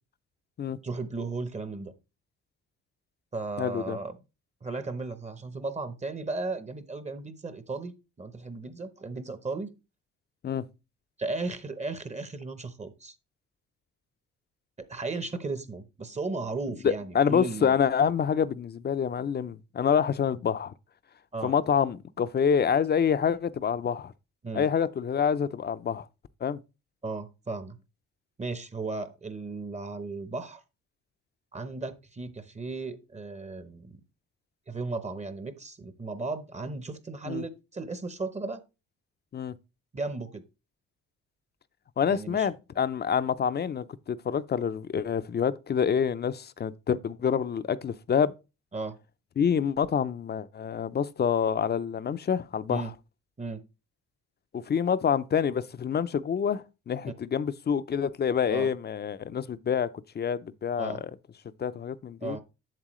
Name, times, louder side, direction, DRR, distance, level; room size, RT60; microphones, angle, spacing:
voice 1, 0.8-1.9 3.3-4.2 4.6-9.7 11.2-13.2 14.8-17.8 21.3-21.5 24.4-24.7 27.0-27.8 28.4-30.6 31.5-34.0 34.7-38.6 39.9-40.4 42.1-42.5 48.7-49.0 52.7-52.9 53.4-53.6 58.5-58.7 60.8-61.0 62.2-62.4, right 3 dB, 25° right, 0.8 m, -35 dB
voice 2, 3.6-4.0 10.4-10.7 16.8-20.7 21.4-24.1 24.5-26.1 26.4-26.6 37.3-37.4 39.3-39.5 42.0-48.3 49.4-52.8 54.5-59.9 60.1-61.1 61.6-62.4, left 7 dB, 35° left, 0.5 m, -27 dB
7.5 x 7.2 x 3.0 m
cardioid pair, 90°, 30 cm